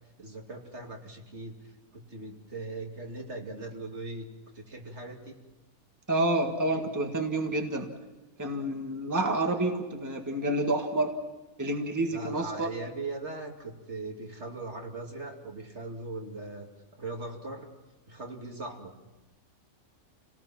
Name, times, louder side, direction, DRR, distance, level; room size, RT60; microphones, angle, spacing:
voice 1, 0.2-4.3 4.5-5.4 12.1-17.7 18.1-19.0, right 2 dB, 50° right, 1 dB, 2.9 m, -40 dB
voice 2, 6.1-7.9 8.4-11.1 11.6-12.7, right 1 dB, 15° right, 3 dB, 1.7 m, -29 dB
29.0 x 18.5 x 6.0 m, 1.1 s
omnidirectional pair, 1.5 m